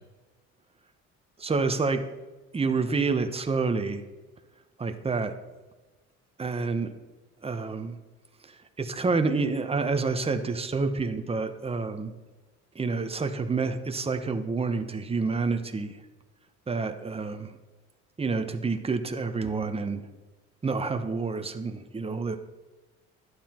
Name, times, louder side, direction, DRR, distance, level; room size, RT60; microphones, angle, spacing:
voice 1, 1.4-2.0 2.5-4.0 4.8-5.3 6.4-6.9 7.4-7.9 8.8-12.1 12.7-16.0 16.7-17.5 18.2-20.0 20.6-22.4, right 4 dB, 20° right, 7 dB, 1.1 m, -28 dB
11.5 x 9.6 x 4.5 m, 1.2 s
cardioid pair, 100°, 29 cm